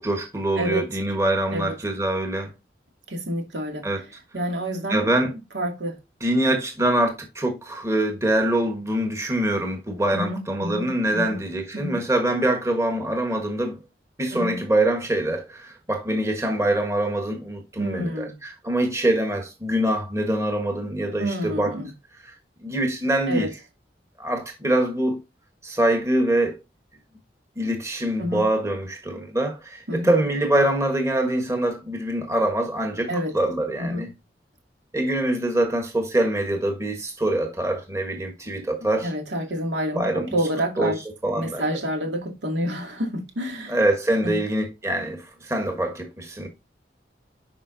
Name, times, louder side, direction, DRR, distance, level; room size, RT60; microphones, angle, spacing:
voice 1, 0.0-2.5 3.8-4.0 4.9-5.3 6.2-13.8 14.2-21.7 22.6-23.5 24.2-25.2 25.6-26.6 27.6-34.1 34.9-39.1 39.9-40.4 40.8-40.9 41.2-41.6 43.7-46.5, right 1 dB, 15° right, 1.4 m, -24 dB
voice 2, 3.1-3.9 4.3-5.1 5.5-6.0 10.1-11.4 11.7-12.0 14.3-14.6 17.8-18.3 21.2-21.9 23.3-23.5 28.2-28.4 29.9-30.2 33.1-33.3 33.8-34.0 39.0-41.0 41.3-43.8 44.2-44.4, equal, 85° right, 2.4 m, -28 dB
10.5 x 5.1 x 2.7 m
head